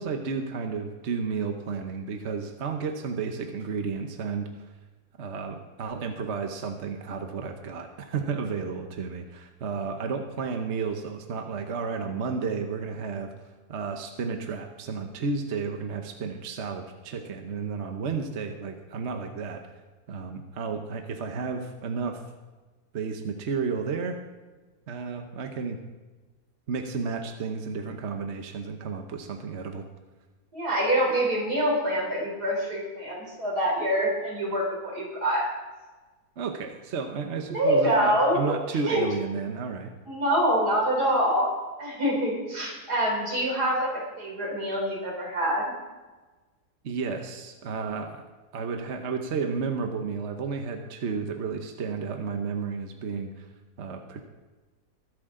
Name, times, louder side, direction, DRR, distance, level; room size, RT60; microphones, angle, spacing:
voice 1, 0.0-4.5 5.2-13.3 13.7-19.6 20.1-22.2 22.9-24.2 24.9-25.8 26.7-29.9 36.4-39.9 46.8-48.3 48.5-53.5 53.8-54.3, right 5 dB, 50° right, 5 dB, 1.1 m, -32 dB
voice 2, 30.5-35.4 37.5-38.6 38.9-39.1 40.1-45.6, equal, 75° right, -2 dB, 4.5 m, -25 dB
22.0 x 8.3 x 3.8 m, 1.3 s
omnidirectional pair, 1.7 m